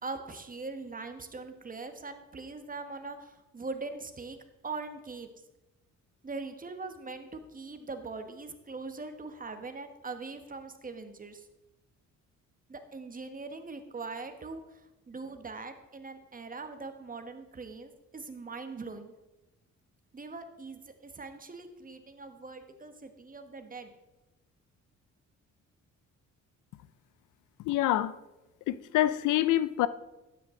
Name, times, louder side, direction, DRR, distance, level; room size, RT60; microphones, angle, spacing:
voice 1, 0.0-4.4 4.6-5.3 6.2-11.5 12.7-19.1 20.1-23.9, right 3 dB, 30° right, 1.3 m, -41 dB
voice 2, 27.6-28.1 28.7-29.9, left 14 dB, 85° left, 0.6 m, -26 dB
12.0 x 9.3 x 3.8 m
cardioid pair, 90°, 30 cm